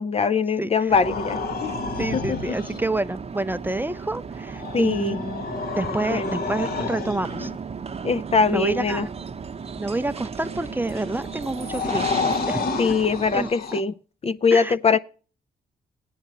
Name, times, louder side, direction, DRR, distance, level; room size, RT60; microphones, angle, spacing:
voice 1, 0.0-1.7 2.1-2.6 4.7-5.2 6.0-6.3 8.0-9.1 12.8-13.9 14.2-15.0, left 5 dB, 35° left, 0.5 m, -22 dB
voice 2, 0.6-0.9 2.0-5.5 5.8-7.5 8.5-9.1 9.8-12.1 12.5-12.8 13.3-13.8 14.5-14.7, right 2 dB, 10° right, 0.5 m, -28 dB
sound 1, 0.9-13.5, right 5 dB, 35° right, 0.9 m, -36 dB
sound 2, 1.0-2.8 4.4-7.6 10.4-13.8, left 4 dB, 60° left, 1.2 m, -30 dB
16.5 x 10.0 x 3.0 m
supercardioid pair, 60°, 17 cm